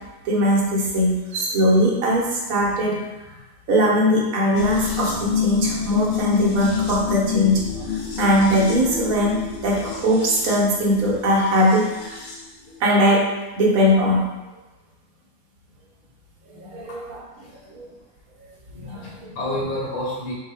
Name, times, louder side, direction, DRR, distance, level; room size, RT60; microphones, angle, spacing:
voice 1, 0.2-3.0 3.7-7.8 8.2-12.2 12.8-13.3 13.6-14.3 16.5-17.9 18.7-19.3, equal, 55° right, -3 dB, 1.2 m, -20 dB
sound 1, 4.6-12.5 12.7-12.8, left 8 dB, 65° left, 0.6 m, -28 dB
voice 2, 17.4-17.7 18.9-20.3, left 1 dB, 85° left, -5 dB, 1.7 m, -30 dB
4.3 x 3.0 x 3.3 m, 1.1 s
omnidirectional pair, 2.0 m